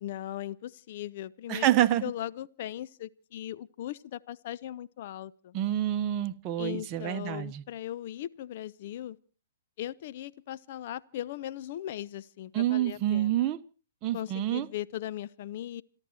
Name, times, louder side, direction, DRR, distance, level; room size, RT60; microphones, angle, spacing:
voice 1, 0.0-1.7 2.0-5.6 6.6-9.2 9.8-13.4 14.1-15.8, left 12 dB, 50° left, 0.7 m, -38 dB
voice 2, 1.5-2.0 5.5-7.6 12.5-13.6 14.0-14.7, right 13 dB, 30° right, 1.0 m, -27 dB
28.5 x 11.5 x 4.4 m
figure-of-eight pair, 120°, 0 cm